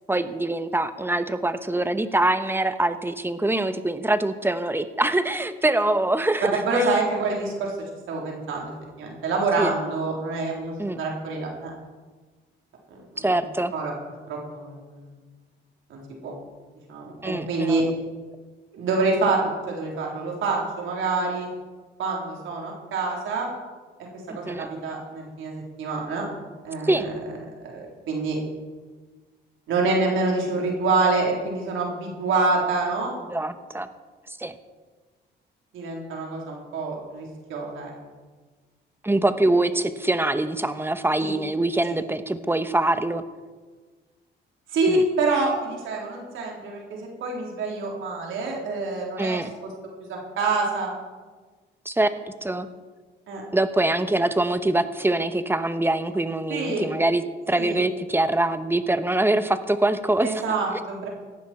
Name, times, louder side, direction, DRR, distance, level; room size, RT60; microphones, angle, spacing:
voice 1, 0.1-6.9 9.6-9.7 10.8-11.0 13.2-13.7 17.2-17.9 24.3-24.7 26.8-27.1 33.3-33.9 34.4-34.5 39.0-43.2 44.9-45.0 49.2-49.5 51.8-52.1 52.4-52.7 53.5-60.4, right 2 dB, 10° right, 10 dB, 1.0 m, -24 dB
voice 2, 6.7-7.8 8.1-8.7 9.0-11.7 12.9-13.3 13.7-13.9 14.3-15.1 15.9-16.3 16.9-17.8 18.7-21.5 22.0-23.5 24.3-26.3 26.6-27.1 27.7-28.4 29.7-33.1 35.7-37.9 41.2-41.3 44.7-49.7 50.1-50.9 53.3-53.4 56.5-56.9 57.6-57.8 60.2-61.1, right 3 dB, 80° right, -1 dB, 3.7 m, -26 dB
17.0 x 12.5 x 4.4 m, 1.4 s
cardioid pair, 90°, 20 cm